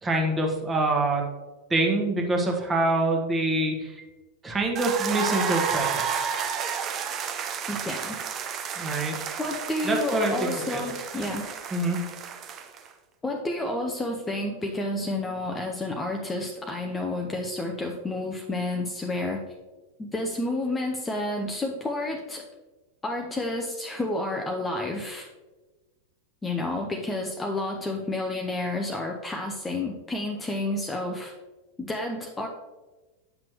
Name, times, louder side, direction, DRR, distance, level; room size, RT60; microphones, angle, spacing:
voice 1, 0.0-1.2 1.7-3.9 4.4-6.1 8.8-9.1 9.8-10.8 11.7-12.0, right 2 dB, 15° right, 1 dB, 1.3 m, -25 dB
sound 1, 4.8-12.9, right 7 dB, 30° right, 0.6 m, -31 dB
voice 2, 7.7-8.2 9.4-11.5 13.2-19.4 20.0-22.4 23.0-25.3 26.4-31.3 31.8-32.5, left 2 dB, 15° left, 2 dB, 0.7 m, -30 dB
8.8 x 5.9 x 3.0 m, 1.2 s
figure-of-eight pair, 90°, 0 cm